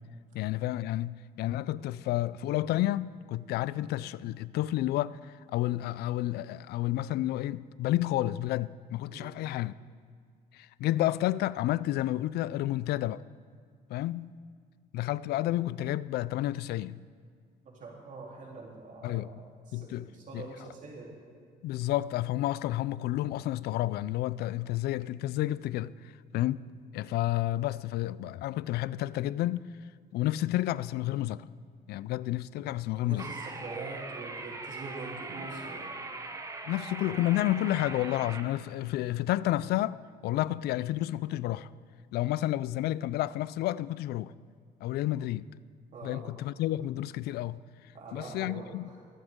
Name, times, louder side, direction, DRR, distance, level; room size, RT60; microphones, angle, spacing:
voice 1, 0.3-9.7 10.5-13.2 13.9-14.4 14.9-17.0 19.0-19.3 19.7-20.1 20.3-20.5 21.6-25.9 26.3-26.6 26.9-29.7 30.1-31.5 31.9-33.3 36.6-41.7 42.1-44.3 44.8-45.5 46.0-47.6 48.1-48.9, left 15 dB, 70° left, 0.4 m, -30 dB
voice 2, 17.8-21.1 26.3-26.5 33.0-36.0 45.9-46.4 47.9-49.0, right 3 dB, 50° right, 3.3 m, -44 dB
sound 1, 33.2-38.4, right 3 dB, 20° right, 1.1 m, -41 dB
23.0 x 8.0 x 3.7 m
cardioid pair, 110°, 17 cm